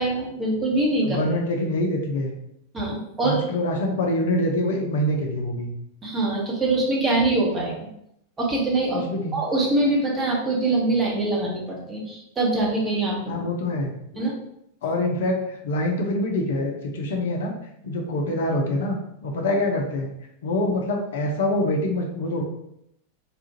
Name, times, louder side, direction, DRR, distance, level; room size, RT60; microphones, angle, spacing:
voice 1, 0.0-1.2 2.7-3.4 6.0-7.7 8.4-9.0 9.3-13.4 14.2-14.3, right 2 dB, 20° right, -3 dB, 1.0 m, -23 dB
voice 2, 1.0-2.3 3.2-5.7 8.9-9.4 13.3-14.2 14.8-17.5 17.8-19.0 19.2-20.1 20.4-22.4, left 1 dB, 60° left, 2 dB, 0.5 m, -25 dB
3.3 x 2.4 x 2.8 m, 0.77 s
figure-of-eight pair, 90°, 0 cm